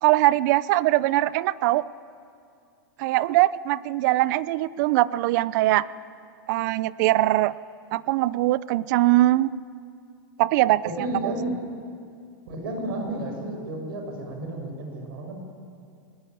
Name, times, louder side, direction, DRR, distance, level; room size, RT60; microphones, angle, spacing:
voice 1, 0.0-1.8 3.0-5.9 6.5-7.5 7.9-9.5 10.4-10.9 11.2-11.3, right 16 dB, 55° right, 19 dB, 0.6 m, -21 dB
voice 2, 10.8-11.6 12.5-15.4, right 1 dB, 75° right, 3 dB, 6.4 m, -32 dB
20.0 x 20.0 x 9.5 m, 2.4 s
supercardioid pair, 140°, 12 cm